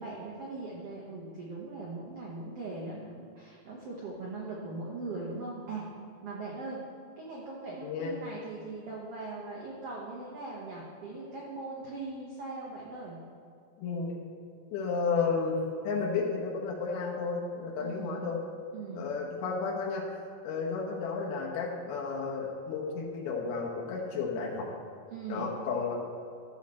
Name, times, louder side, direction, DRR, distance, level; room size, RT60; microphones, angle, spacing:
voice 1, 0.0-5.8 6.2-6.8 7.2-13.2 17.8-18.2 18.7-19.1 25.1-25.5, right 3 dB, 80° right, -4 dB, 1.3 m, -40 dB
voice 2, 7.8-8.1 13.8-14.2 14.7-15.6 15.8-18.4 18.9-20.0 20.4-24.7 25.3-25.9, left 5 dB, 80° left, -1 dB, 3.0 m, -32 dB
13.0 x 6.5 x 4.2 m, 2.4 s
omnidirectional pair, 4.5 m